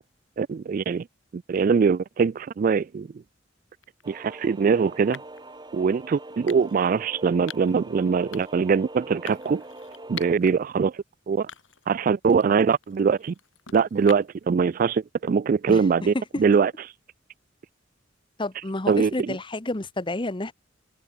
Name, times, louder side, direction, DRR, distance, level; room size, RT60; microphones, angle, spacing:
voice 1, 0.4-1.1 1.3-3.1 4.1-5.2 5.7-9.6 10.1-11.5 11.9-13.3 13.7-16.7 18.9-19.3, right 5 dB, 45° right, 0.3 m, -22 dB
sound 1, 3.8-4.1 5.1-5.5 6.5-6.9 7.5-7.8 8.3-8.7 9.3-10.5 10.9-11.0 11.5-11.9 12.3-14.5, left 8 dB, 80° left, 4.0 m, -43 dB
sound 2, 4.0-10.4, right 2 dB, 25° right, 6.7 m, -43 dB
voice 2, 18.4-20.5, left 2 dB, 25° left, 1.0 m, -30 dB
head